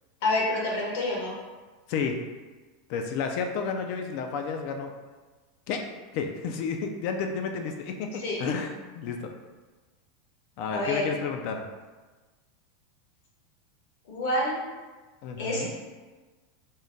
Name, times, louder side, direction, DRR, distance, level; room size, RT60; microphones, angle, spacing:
voice 1, 0.2-1.4 8.2-8.4 10.7-11.1 14.1-14.6 15.4-15.7, left 1 dB, 70° left, -3 dB, 1.2 m, -27 dB
voice 2, 2.9-4.9 5.7-5.8 6.1-9.3 10.6-11.6 15.2-15.7, left 5 dB, 50° left, 4 dB, 0.3 m, -31 dB
3.6 x 2.2 x 3.9 m, 1.3 s
supercardioid pair, 155°, 0 cm